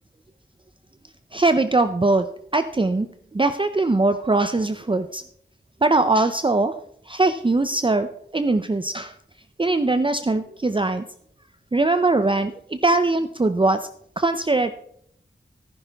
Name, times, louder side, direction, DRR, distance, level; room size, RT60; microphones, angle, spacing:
voice 1, 1.3-2.3 2.5-3.1 3.3-5.2 5.8-6.7 7.1-8.1 8.3-9.2 9.6-11.1 11.7-13.9 14.2-14.7, right 2 dB, 25° right, 9 dB, 0.5 m, -21 dB
15.0 x 10.0 x 3.5 m, 0.68 s
wide cardioid pair, 65°, 20 cm